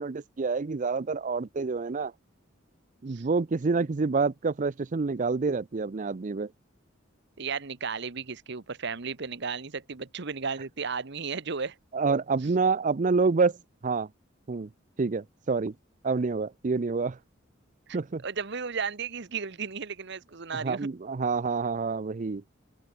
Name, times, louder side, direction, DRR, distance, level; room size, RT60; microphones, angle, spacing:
voice 1, 0.0-2.1 3.0-6.5 11.9-13.6 13.8-14.1 14.5-14.7 15.0-15.7 16.0-17.2 17.9-18.2 20.5-22.4, right 4 dB, 40° right, 0.5 m, -27 dB
voice 2, 7.4-11.8 17.9-18.0 18.2-20.9, right 5 dB, 60° right, 1.1 m, -34 dB
open air
head